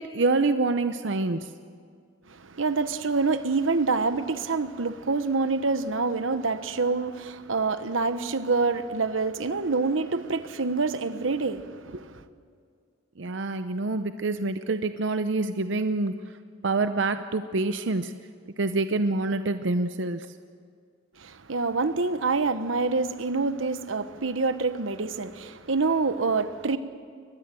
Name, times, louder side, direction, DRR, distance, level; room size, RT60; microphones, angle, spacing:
voice 1, 0.0-1.5 13.2-16.2 16.6-18.1 18.6-20.3, right 3 dB, 65° right, 0.7 m, -26 dB
voice 2, 2.3-12.2 21.2-26.8, right 4 dB, 90° right, 1.1 m, -26 dB
23.0 x 20.0 x 7.7 m
head